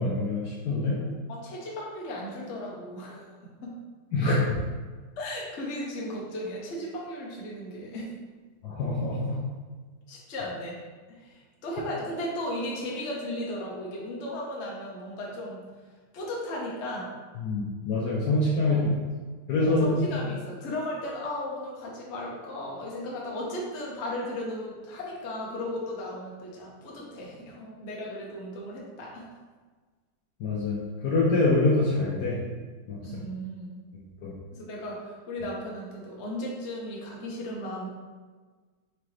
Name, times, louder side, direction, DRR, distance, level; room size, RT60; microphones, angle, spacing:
voice 1, 0.0-1.0 4.1-4.6 8.6-9.4 17.4-18.9 19.5-20.2 30.4-30.8 31.0-32.4 32.9-33.0 34.2-34.3, left 2 dB, 70° left, -5 dB, 1.1 m, -25 dB
voice 2, 0.9-3.7 5.2-8.1 10.1-10.8 11.1-15.7 16.1-17.1 18.6-19.0 19.6-29.3 33.0-33.8 34.5-37.9, left 1 dB, 50° left, -3 dB, 0.9 m, -36 dB
4.8 x 2.9 x 3.2 m, 1.4 s
omnidirectional pair, 2.2 m